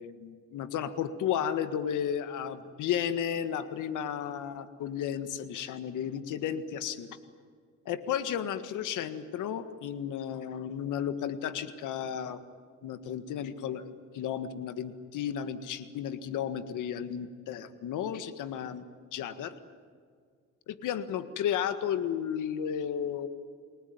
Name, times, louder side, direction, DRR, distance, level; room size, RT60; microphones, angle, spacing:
voice 1, 0.0-7.2 7.9-12.4 12.8-18.8 19.1-19.5 20.7-23.3, left 9 dB, 85° left, 11 dB, 1.8 m, -33 dB
29.0 x 20.0 x 9.6 m, 2.1 s
cardioid pair, 90°, 30 cm